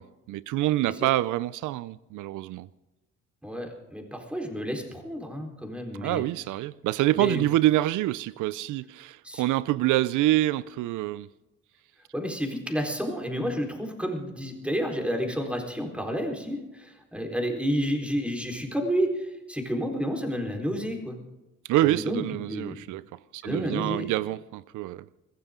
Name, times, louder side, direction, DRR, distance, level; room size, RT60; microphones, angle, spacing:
voice 1, 0.0-2.7 6.0-11.3 21.7-25.2, right 15 dB, 85° right, 0.5 m, -26 dB
voice 2, 3.4-6.2 7.1-7.4 9.2-9.4 12.1-21.2 21.8-22.8 23.4-24.1, equal, 5° right, 4.1 m, -30 dB
22.0 x 15.0 x 3.8 m
cardioid pair, 90°, 30 cm